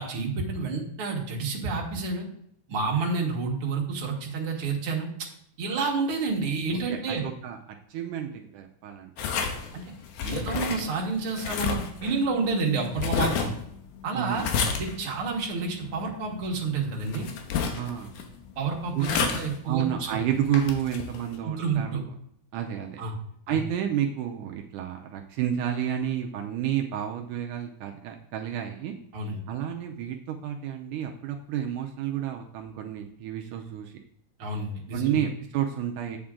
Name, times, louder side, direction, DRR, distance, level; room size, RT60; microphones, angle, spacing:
voice 1, 0.0-2.3 2.7-5.3 5.6-7.2 9.7-9.9 10.2-13.5 14.0-14.5 14.8-17.3 18.6-20.3 21.4-22.0 23.0-23.1 23.5-23.6 29.1-29.4 34.4-35.2, right 4 dB, 50° right, -1 dB, 2.2 m, -29 dB
voice 2, 6.9-7.6 7.9-9.1 14.1-14.5 17.8-18.1 18.9-19.3 19.7-22.0 22.5-23.0 23.5-28.9 29.5-33.9 34.9-36.2, right 10 dB, 80° right, 2 dB, 2.1 m, -30 dB
sound 1, 9.2-21.4, left 6 dB, 85° left, 2.5 m, -32 dB
8.8 x 7.2 x 3.7 m, 0.68 s
omnidirectional pair, 3.6 m